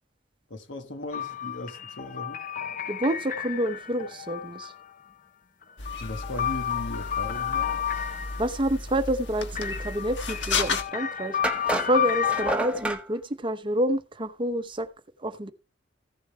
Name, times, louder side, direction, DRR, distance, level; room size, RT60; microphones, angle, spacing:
voice 1, 0.5-2.4 6.0-7.8, left 1 dB, 90° left, 1.5 m, -37 dB
sound 1, 1.1-4.9 5.6-8.7 9.6-12.5, left 9 dB, 45° left, 0.6 m, -31 dB
voice 2, 2.9-4.7 8.4-11.4 11.7-14.9 15.2-15.5, right 1 dB, 25° right, 0.8 m, -28 dB
sound 2, 5.8-10.8, left 4 dB, 70° left, 1.4 m, -33 dB
sound 3, 11.4-13.0, right 1 dB, 5° right, 1.0 m, -29 dB
15.0 x 7.0 x 3.3 m
head